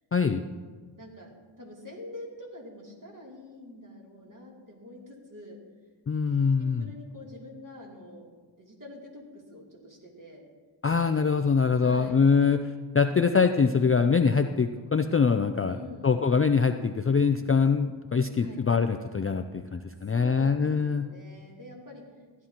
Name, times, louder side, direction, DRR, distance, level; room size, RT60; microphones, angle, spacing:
voice 1, 0.1-0.4 6.1-6.9 10.8-12.6 12.9-15.8 16.0-21.1, left 5 dB, 30° left, 7 dB, 0.4 m, -24 dB
voice 2, 1.0-1.3 1.6-5.6 6.6-8.2 8.6-10.4 11.8-12.2 15.7-16.1 18.4-18.6 20.1-22.0, left 1 dB, 40° right, -3 dB, 2.9 m, -45 dB
15.0 x 11.0 x 2.9 m, 1.5 s
wide cardioid pair, 85°, 50 cm